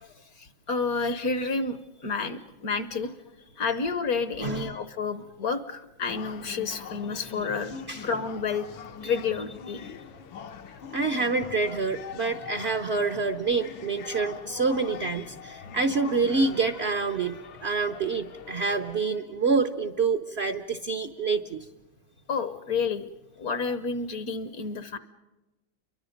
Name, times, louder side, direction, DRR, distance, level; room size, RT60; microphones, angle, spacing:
voice 1, 0.0-3.1 3.6-7.7 8.0-8.7 9.0-9.8 22.3-23.1 23.4-25.0, left 4 dB, 55° left, 11 dB, 1.2 m, -30 dB
voice 2, 4.4-4.8 7.9-8.0 9.0-9.1 10.9-21.7, right 4 dB, 50° right, 6 dB, 0.8 m, -27 dB
sound 1, 6.1-19.0, left 7 dB, 80° left, 1.8 m, -43 dB
29.5 x 23.0 x 5.2 m, 1.1 s
omnidirectional pair, 2.2 m